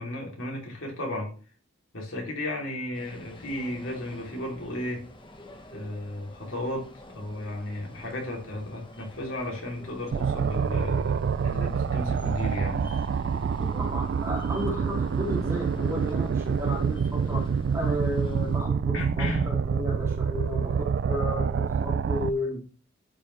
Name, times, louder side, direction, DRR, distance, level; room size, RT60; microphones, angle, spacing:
voice 1, 0.0-1.3 1.9-5.1 5.7-12.9 18.2-18.4 18.9-19.5, left 1 dB, 80° left, 0 dB, 2.8 m, -34 dB
sound 1, 2.9-18.6, left 1 dB, 25° left, 1.1 m, -48 dB
sound 2, 10.1-22.3, right 6 dB, 55° right, 0.3 m, -27 dB
voice 2, 13.8-22.6, equal, 15° right, -2 dB, 2.6 m, -33 dB
11.5 x 5.3 x 3.2 m, 0.38 s
head